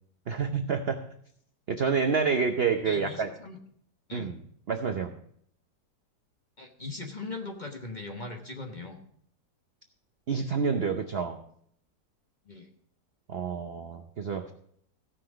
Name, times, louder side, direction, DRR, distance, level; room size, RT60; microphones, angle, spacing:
voice 1, 0.3-1.0 1.7-3.3 4.1-4.3 4.7-5.1 10.3-11.4 13.3-14.5, right 5 dB, 55° right, 5 dB, 0.7 m, -28 dB
voice 2, 2.8-3.6 4.1-4.4 6.6-9.0 12.4-12.7, left 3 dB, 30° left, 2 dB, 1.0 m, -39 dB
16.0 x 5.9 x 5.0 m, 0.64 s
omnidirectional pair, 1.9 m